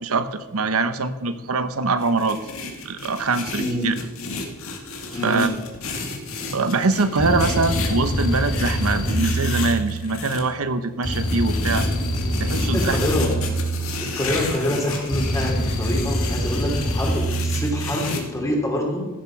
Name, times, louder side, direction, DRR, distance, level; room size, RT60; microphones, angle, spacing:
voice 1, 0.0-2.4 2.8-3.9 5.2-5.5 6.5-11.9 12.4-13.0, right 3 dB, 90° right, 11 dB, 1.0 m, -23 dB
sound 1, 2.0-10.4 11.1-18.2, left 3 dB, 70° left, 2.2 m, -32 dB
voice 2, 3.5-4.0 5.1-5.5 12.5-13.4 14.0-19.1, left 1 dB, 15° left, 0 dB, 2.9 m, -26 dB
sound 2, 7.2-10.3 11.0-14.3 15.1-17.9, equal, 90° left, 2.7 m, -25 dB
15.5 x 7.6 x 5.8 m, 1.1 s
head